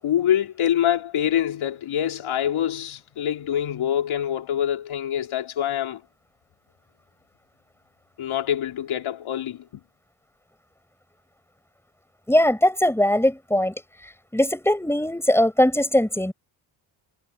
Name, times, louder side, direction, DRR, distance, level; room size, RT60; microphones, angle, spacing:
voice 1, 0.0-6.0 8.2-9.8, left 10 dB, 75° left, 3.9 m, -25 dB
voice 2, 12.3-13.7 14.3-16.3, left 1 dB, 5° left, 5.6 m, -20 dB
cardioid pair, 100°, 49 cm